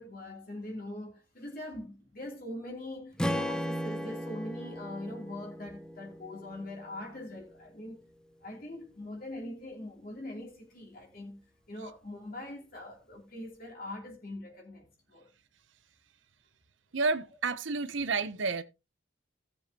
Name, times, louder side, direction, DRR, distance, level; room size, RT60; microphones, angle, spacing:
voice 1, 0.0-8.0 8.4-15.3, left 1 dB, 50° left, 2.9 m, -42 dB
Strum, 3.2-7.5, equal, 5° left, 0.6 m, -36 dB
voice 2, 16.9-18.6, right 4 dB, 75° right, 0.8 m, -30 dB
16.5 x 7.2 x 2.8 m
head